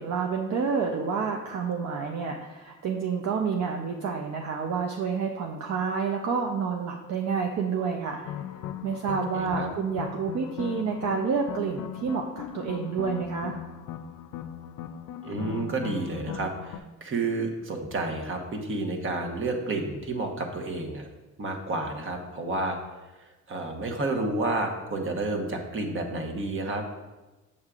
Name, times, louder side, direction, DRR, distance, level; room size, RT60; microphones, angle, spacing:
voice 1, 0.0-8.3 8.8-13.6, right 5 dB, 60° right, 2 dB, 0.6 m, -29 dB
sound 1, 8.2-16.8, left 9 dB, 80° left, 0.5 m, -38 dB
voice 2, 9.3-9.7 15.2-21.1 21.4-22.8 23.2-26.8, right 2 dB, 40° right, 3 dB, 1.1 m, -30 dB
7.1 x 6.5 x 2.4 m, 1.1 s
cardioid pair, 90°, 30 cm